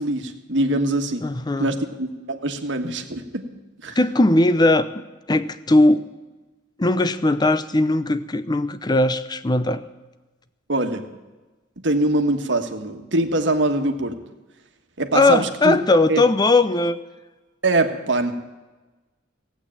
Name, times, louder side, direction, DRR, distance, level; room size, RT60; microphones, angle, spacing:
voice 1, 0.0-1.2 1.6-3.5 3.8-4.0 10.7-11.1 11.8-14.2 15.0-15.8 16.1-16.2 17.6-18.3, right 2 dB, 70° right, 5 dB, 1.4 m, -23 dB
voice 2, 1.2-1.7 4.0-5.0 5.3-6.1 6.8-9.8 15.1-17.0, left 2 dB, 20° left, 13 dB, 0.6 m, -19 dB
16.0 x 8.4 x 8.7 m, 1.2 s
head